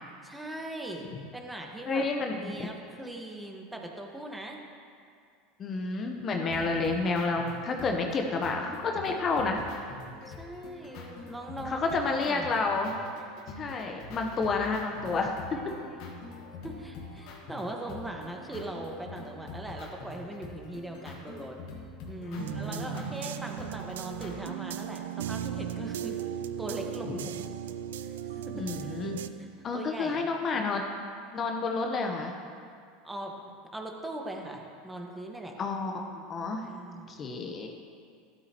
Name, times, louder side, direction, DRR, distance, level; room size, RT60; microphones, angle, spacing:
voice 1, 0.2-2.0 2.4-4.6 6.5-6.9 10.2-12.5 15.5-16.2 16.6-21.6 22.1-26.2 26.6-27.4 28.0-28.6 29.4-30.3 30.5-30.7 33.0-35.5 36.6-37.2, right 1 dB, 10° right, 1 dB, 1.6 m, -40 dB
voice 2, 1.9-2.6 5.6-9.6 11.7-13.0 13.6-15.4 22.3-23.0 27.1-27.3 28.5-29.2 29.6-30.8 31.3-32.3 35.6-36.7 37.1-37.7, left 3 dB, 35° left, 3 dB, 1.0 m, -30 dB
sound 1, 6.5-24.3, left 3 dB, 60° left, 1.7 m, -45 dB
sound 2, 22.4-29.3, right 11 dB, 80° right, 0.4 m, -37 dB
13.0 x 12.0 x 3.1 m, 2.3 s
hypercardioid pair, 85°, 0 cm